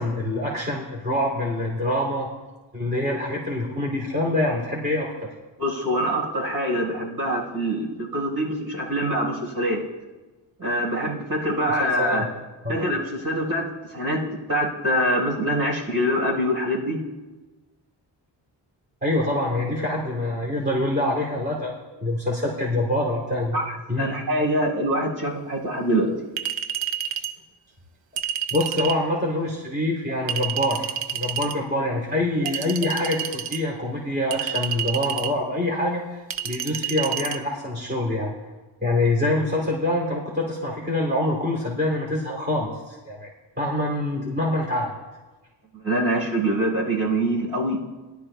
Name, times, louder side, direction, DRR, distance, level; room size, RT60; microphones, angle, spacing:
voice 1, 0.0-2.3 2.7-5.3 11.8-12.3 12.6-12.8 19.0-23.6 23.9-24.1 28.5-38.3 38.8-43.3 43.6-44.9, left 1 dB, 20° right, -3 dB, 2.6 m, -25 dB
voice 2, 5.6-9.8 10.6-12.2 12.7-17.0 23.5-26.1 45.7-47.8, equal, 55° right, -3 dB, 4.3 m, -24 dB
Chink clink, 26.4-27.3 28.2-29.0 30.3-31.5 32.5-33.6 34.3-35.3 36.3-37.4, right 9 dB, 75° right, 0.7 m, -29 dB
18.5 x 12.0 x 2.2 m, 1.2 s
cardioid pair, 90°, 45 cm